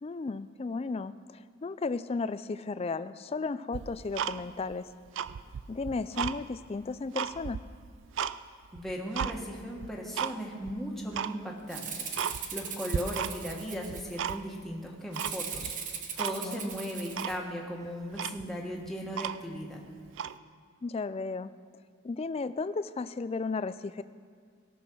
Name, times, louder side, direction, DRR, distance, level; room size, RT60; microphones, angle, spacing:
voice 1, 0.0-4.9 5.7-7.6 16.4-16.7 20.8-21.5 22.0-24.0, left 4 dB, 30° left, 14 dB, 0.3 m, -34 dB
Tick-tock, 3.7-4.7 5.1-6.4 6.8-8.4 8.7-9.3 9.8-10.3 10.6-10.7 11.1-11.3 11.7-11.8 12.1-12.7 12.9-13.6 13.8-14.6 15.2-15.7 16.2-16.4 16.7-16.8 17.1-17.4 17.9-18.0 18.1-19.6 20.1-20.4, right 8 dB, 65° right, 0.3 m, -34 dB
voice 2, 8.7-19.8, equal, ahead, -2 dB, 1.5 m, -37 dB
Rattle (instrument), 11.7-14.3 15.1-17.4, right 6 dB, 40° right, 1.0 m, -39 dB
17.0 x 6.2 x 6.2 m, 2.1 s
head